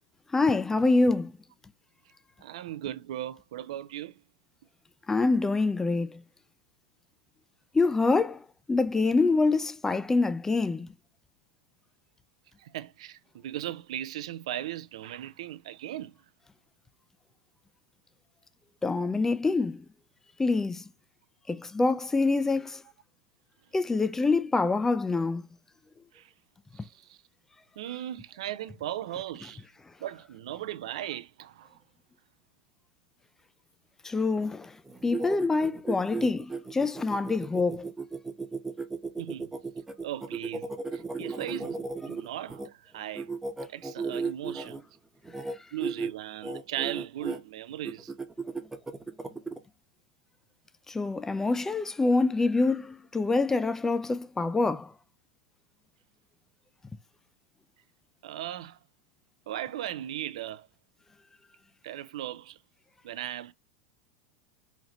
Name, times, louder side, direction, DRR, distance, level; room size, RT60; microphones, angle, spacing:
voice 1, 0.3-1.3 5.1-6.2 7.7-8.4 8.7-10.9 18.8-19.9 20.4-20.8 21.5-22.8 23.7-25.4 34.0-34.7 35.0-37.9 50.9-54.9, left 3 dB, 15° left, 0.3 m, -25 dB
voice 2, 2.4-4.1 12.6-16.2 26.1-26.3 26.8-27.2 27.8-29.7 30.0-31.8 39.2-39.5 40.0-43.3 43.7-44.8 45.7-48.1 58.2-58.8 59.5-60.7 61.8-62.6 63.0-63.5, right 12 dB, 75° right, 0.4 m, -37 dB
sound 1, 34.9-42.7 43.1-44.8 45.2-45.5 45.8-46.1 46.4-47.4 47.8-49.6, right 4 dB, 10° right, 0.8 m, -35 dB
4.0 x 2.9 x 2.9 m
hypercardioid pair, 100°, 3 cm